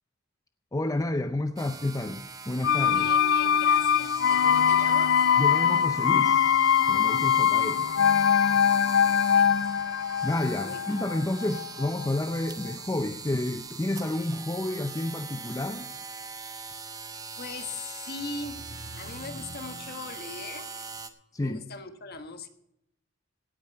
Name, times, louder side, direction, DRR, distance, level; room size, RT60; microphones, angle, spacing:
voice 1, 0.7-3.1 5.4-7.9 10.2-15.9 21.3-21.6, left 1 dB, 15° left, 0.5 m, -30 dB
sound 1, 1.6-21.1, right 4 dB, 20° right, 0.9 m, -42 dB
sound 2, 2.6-12.4 12.7-12.8, left 8 dB, 70° left, 0.4 m, -23 dB
sound 3, 2.6-10.3, right 1 dB, 80° right, 6.6 m, -49 dB
voice 2, 2.9-5.3 9.0-9.7 10.6-11.0 16.8-16.9 17.4-20.9 21.4-22.5, left 3 dB, 55° left, 1.4 m, -40 dB
17.0 x 8.8 x 4.7 m
head